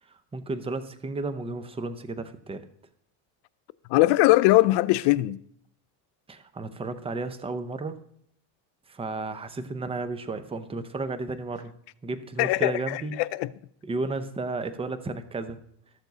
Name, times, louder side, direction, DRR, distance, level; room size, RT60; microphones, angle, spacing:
voice 1, 0.1-2.7 6.3-8.0 8.9-11.7 12.0-13.2 13.8-15.6, right 3 dB, 15° right, 0.6 m, -33 dB
voice 2, 3.9-5.4 12.4-13.5, left 18 dB, 60° left, 0.5 m, -21 dB
13.0 x 7.0 x 4.0 m
cardioid pair, 130°, 46 cm